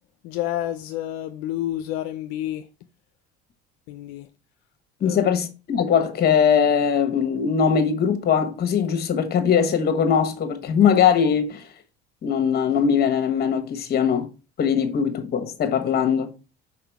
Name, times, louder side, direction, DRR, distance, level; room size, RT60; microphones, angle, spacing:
voice 1, 0.2-2.7 3.9-4.3 5.0-5.2, left 13 dB, 80° left, 0.5 m, -29 dB
voice 2, 5.0-11.7 12.2-14.3 14.6-16.3, left 7 dB, 50° left, 1.3 m, -21 dB
4.9 x 4.3 x 4.6 m
supercardioid pair, 95°, 21 cm